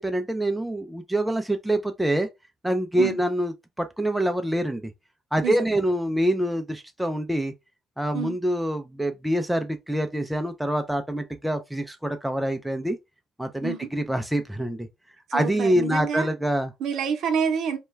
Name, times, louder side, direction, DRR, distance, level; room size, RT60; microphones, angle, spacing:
voice 1, 0.0-2.3 2.6-4.9 5.3-7.5 8.0-13.0 13.4-14.9 15.3-16.7, right 1 dB, 5° right, 0.3 m, -25 dB
voice 2, 5.4-5.8 8.1-8.4 13.6-13.9 15.3-16.3 16.8-17.8, right 7 dB, 65° right, 0.7 m, -28 dB
2.2 x 2.2 x 3.1 m
cardioid pair, 105°, 0 cm